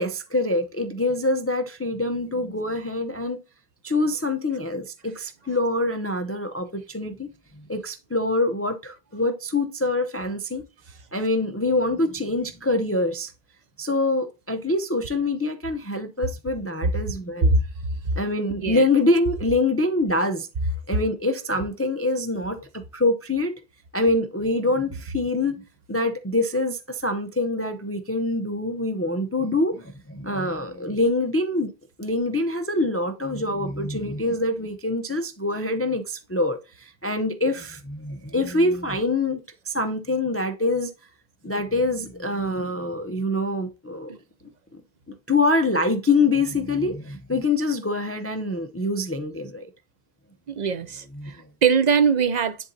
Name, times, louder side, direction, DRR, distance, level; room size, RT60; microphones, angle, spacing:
voice 1, 0.0-3.4 3.8-7.3 7.7-10.6 11.1-13.3 13.8-17.5 18.2-20.5 20.9-23.5 23.9-25.6 25.9-31.7 32.0-39.4 39.7-40.9 41.4-44.2 44.7-44.8 45.3-49.7 51.1-51.3, left 2 dB, 20° left, 0.4 m, -25 dB
voice 2, 50.5-52.6, right 5 dB, 50° right, 0.7 m, -22 dB
10.0 x 3.9 x 2.6 m
omnidirectional pair, 1.1 m